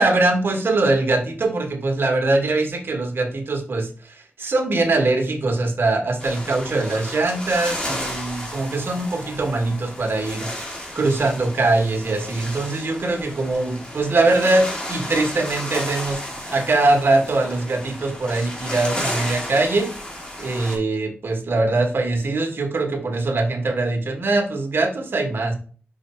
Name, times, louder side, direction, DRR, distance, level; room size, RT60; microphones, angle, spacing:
voice 1, 0.0-10.5 10.9-16.2 16.5-19.9 20.4-25.6, right 2 dB, 65° right, 3 dB, 1.5 m, -22 dB
sound 1, 6.2-20.8, equal, 25° left, 2.3 m, -33 dB
5.9 x 4.8 x 4.4 m, 0.41 s
wide cardioid pair, 135°, 4 cm